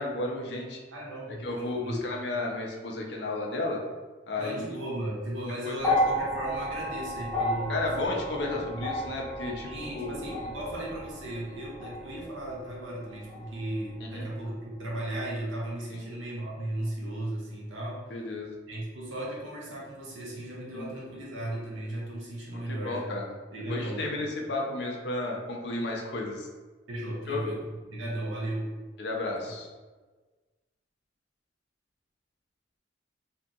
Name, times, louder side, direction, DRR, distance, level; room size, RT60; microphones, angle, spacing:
voice 1, 0.0-0.8 1.4-3.8 4.3-4.6 5.6-6.0 7.7-9.7 9.9-10.3 14.0-14.3 15.9-16.0 18.1-18.5 20.7-20.9 22.7-23.3 23.7-26.5 27.3-27.4 29.0-29.7, left 2 dB, 60° left, 0 dB, 0.5 m, -33 dB
voice 2, 0.9-2.0 4.4-8.9 9.4-18.3 18.7-23.2 23.5-24.2 26.9-28.7, right 1 dB, 90° right, -4 dB, 0.8 m, -36 dB
sound 1, 5.8-14.1 15.2-15.3, left 1 dB, 10° left, 0.8 m, -33 dB
2.7 x 2.6 x 2.3 m, 1.3 s
head